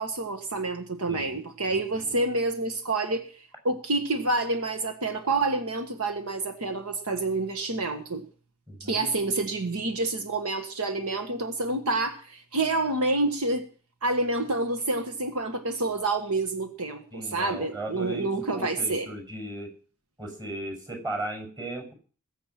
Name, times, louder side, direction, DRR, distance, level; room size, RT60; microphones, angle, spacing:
voice 1, 0.0-3.3 3.6-8.2 8.8-13.7 14.0-19.1, right 2 dB, 80° right, 7 dB, 1.6 m, -28 dB
voice 2, 1.1-1.4 1.7-2.1 8.7-9.1 17.1-19.7 20.2-21.9, right 1 dB, 20° right, 3 dB, 6.6 m, -37 dB
20.5 x 8.2 x 6.0 m, 0.40 s
head